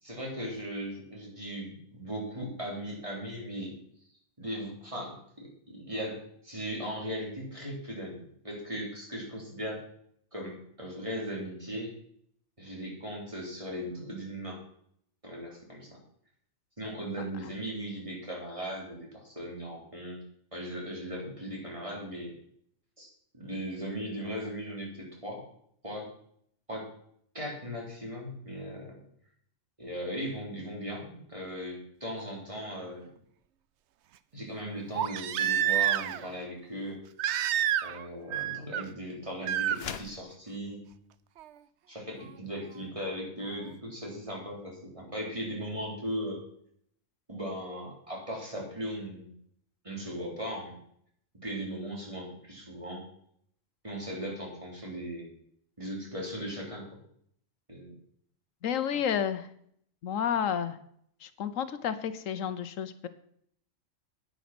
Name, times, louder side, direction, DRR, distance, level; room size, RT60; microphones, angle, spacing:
voice 1, 0.0-3.7 4.4-6.2 6.4-9.8 10.3-11.9 12.6-14.6 15.2-15.9 16.8-20.2 20.5-22.3 23.0-25.4 25.8-26.1 26.7-26.9 27.3-29.0 29.8-33.1 34.3-37.0 37.8-40.8 41.9-46.4 47.3-49.3 49.8-50.8 51.3-53.0 53.8-55.3 55.8-56.9 57.7-57.9, equal, 25° right, -2 dB, 3.6 m, -38 dB
Crying sobbing, 32.2-32.3 34.9-36.3 37.2-38.0 38.3-38.8 39.4-39.8 41.4-41.5, right 11 dB, 65° right, 0.8 m, -28 dB
sound 1, 39.7-40.3, left 7 dB, 55° left, 1.0 m, -39 dB
voice 2, 58.6-59.5 60.0-60.8 61.2-63.1, left 8 dB, 80° left, 12 dB, 1.2 m, -31 dB
9.5 x 9.3 x 6.0 m, 0.66 s
omnidirectional pair, 1.3 m